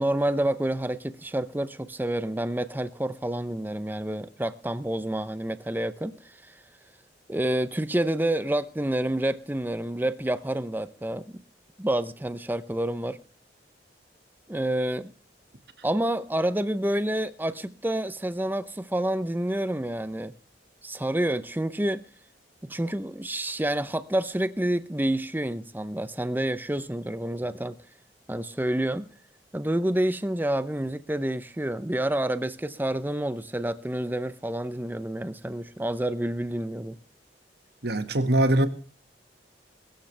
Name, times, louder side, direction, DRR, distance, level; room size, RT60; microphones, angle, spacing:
voice 1, 0.0-6.6 7.3-11.3 11.8-13.2 14.5-15.1 15.8-20.3 20.8-22.0 22.6-27.8 28.3-29.1 29.5-37.0, right 1 dB, 10° right, 0.7 m, -28 dB
voice 2, 37.8-38.7, right 1 dB, 60° right, 1.8 m, -22 dB
22.0 x 13.5 x 3.3 m
head